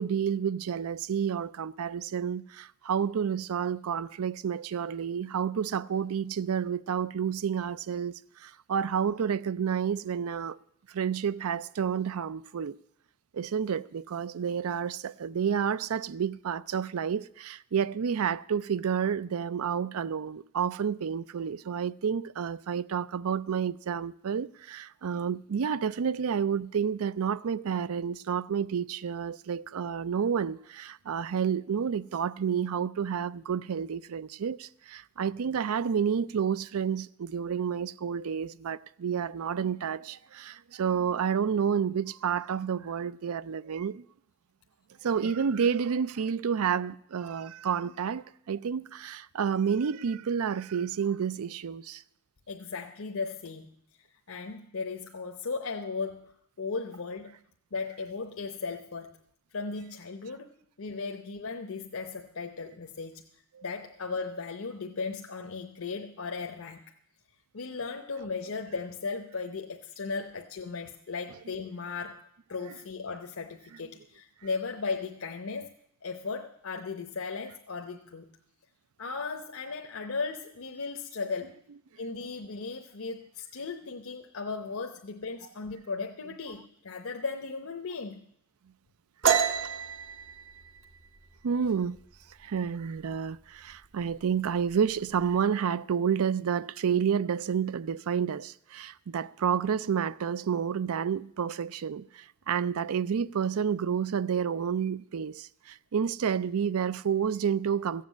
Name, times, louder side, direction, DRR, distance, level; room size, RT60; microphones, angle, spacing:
voice 1, 0.0-10.6 10.9-12.8 13.3-44.0 45.0-52.0 63.6-63.7 91.4-92.0 92.4-108.1, right 7 dB, 90° right, 0.4 m, -30 dB
voice 2, 52.5-53.7 54.3-57.3 57.7-59.2 59.5-63.3 63.6-66.8 67.5-75.7 76.0-78.3 79.0-81.5 82.0-88.2, left 4 dB, 75° left, 0.8 m, -36 dB
sound 1, 89.2-92.7 93.0-93.3 93.7-94.2 94.5-95.3, right 7 dB, 60° right, 1.0 m, -30 dB
15.0 x 7.5 x 8.3 m
head